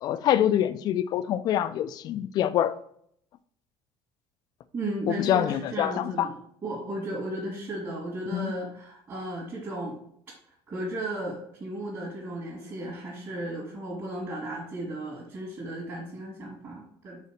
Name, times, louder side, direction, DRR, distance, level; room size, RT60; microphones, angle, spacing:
voice 1, 0.0-2.8 5.1-6.3 8.3-8.5, left 11 dB, 40° left, 0.3 m, -25 dB
voice 2, 4.7-10.0 10.7-17.2, right 1 dB, 30° right, 2.3 m, -35 dB
5.6 x 4.2 x 6.1 m
cardioid pair, 170°, 11 cm